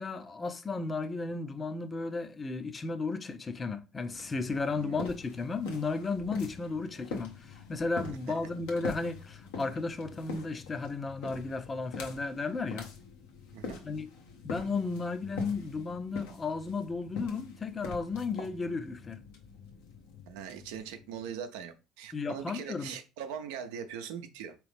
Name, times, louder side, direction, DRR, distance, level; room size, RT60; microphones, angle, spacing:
voice 1, 0.0-12.9 13.8-14.1 14.4-19.2 22.1-22.9, left 4 dB, 30° left, 0.5 m, -34 dB
sound 1, 4.1-21.6, left 4 dB, 85° left, 0.9 m, -44 dB
voice 2, 20.3-24.5, right 8 dB, 85° right, 0.5 m, -41 dB
3.8 x 3.0 x 3.3 m
supercardioid pair, 85°, 0 cm